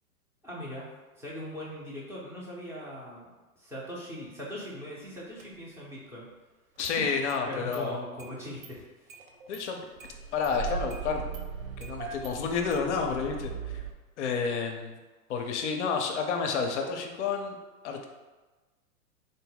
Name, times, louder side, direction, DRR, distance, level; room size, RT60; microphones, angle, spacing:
voice 1, 0.4-0.9 1.2-3.3 3.6-6.3 6.9-7.1 7.5-8.9, equal, 5° right, -6 dB, 0.7 m, -40 dB
Engine starting, 5.4-5.5 6.8-7.4 7.7-7.8 8.2-8.3 8.6-8.7 9.1-9.6 10.0-13.9, right 5 dB, 65° right, 0.7 m, -38 dB
voice 2, 6.8-8.0 9.5-9.9 10.3-11.3 11.8-13.8 14.2-14.9 15.3-17.5 17.8-18.1, left 5 dB, 50° left, 3 dB, 0.6 m, -30 dB
3.7 x 2.0 x 3.9 m, 1.2 s
figure-of-eight pair, 105°, 44 cm